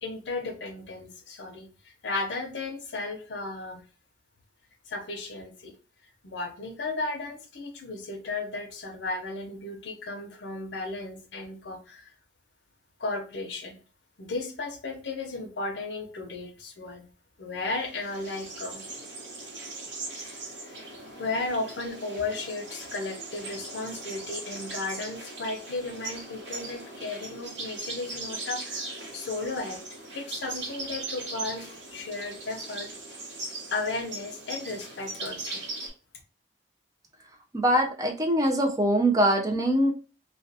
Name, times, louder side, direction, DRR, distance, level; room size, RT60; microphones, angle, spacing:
voice 1, 0.0-3.8 4.9-5.7 6.2-12.1 13.0-13.8 14.2-17.1 17.4-18.8 20.2-20.7 21.2-29.8 30.1-32.9 33.7-35.6, left 3 dB, 75° left, 4 dB, 0.6 m, -35 dB
sound 1, 17.7-35.9, right 2 dB, 80° right, 1.0 m, -39 dB
voice 2, 37.5-39.9, right 1 dB, 20° right, 1 dB, 0.4 m, -23 dB
2.3 x 2.2 x 2.6 m, 0.37 s
head